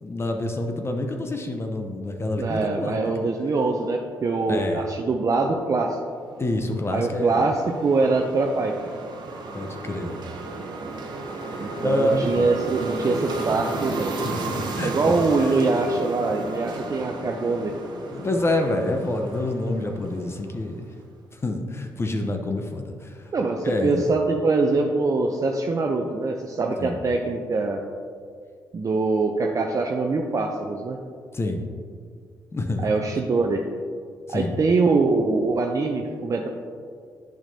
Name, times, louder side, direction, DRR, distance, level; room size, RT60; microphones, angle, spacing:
voice 1, 0.0-3.0 4.5-4.8 6.4-7.4 9.5-10.2 11.8-12.6 14.2-14.4 14.8-15.5 18.1-20.9 21.3-23.3 23.6-24.1 26.8-27.0 31.3-31.6 32.5-32.9 34.3-34.6, left 1 dB, 30° left, 4 dB, 0.8 m, -27 dB
voice 2, 2.4-6.0 6.9-8.7 11.6-14.1 14.8-17.7 23.3-27.8 28.7-31.0 32.8-33.6 34.3-36.5, right 3 dB, 45° right, 2 dB, 0.6 m, -23 dB
sound 1, 6.4-20.7, right 3 dB, 65° right, 0.9 m, -34 dB
8.9 x 5.9 x 2.7 m, 2.1 s
supercardioid pair, 50°, 8 cm